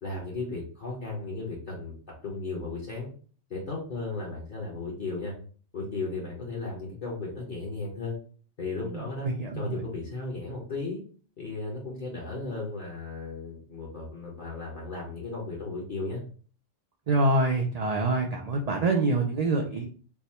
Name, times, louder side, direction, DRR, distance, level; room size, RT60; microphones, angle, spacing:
voice 1, 0.0-1.9 2.2-3.1 3.5-5.3 5.7-8.2 8.6-9.3 9.5-11.0 11.4-16.2, left 3 dB, 45° left, -3 dB, 1.0 m, -35 dB
voice 2, 8.8-9.8 17.1-19.9, right 2 dB, 70° right, 1 dB, 0.3 m, -26 dB
3.4 x 2.0 x 4.2 m, 0.43 s
omnidirectional pair, 1.3 m